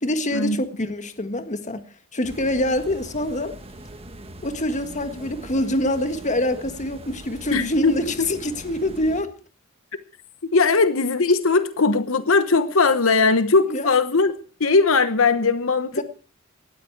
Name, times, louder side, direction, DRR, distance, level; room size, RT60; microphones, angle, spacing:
voice 1, 0.0-1.8 2.1-3.5 4.4-9.3 13.7-13.9 15.9-16.0, left 1 dB, 35° left, 1.6 m, -25 dB
sound 1, 2.2-9.2, right 1 dB, 30° right, 1.5 m, -41 dB
voice 2, 7.5-8.0 10.5-14.3 14.6-16.0, left 4 dB, 75° left, 1.0 m, -19 dB
18.5 x 13.5 x 4.7 m
head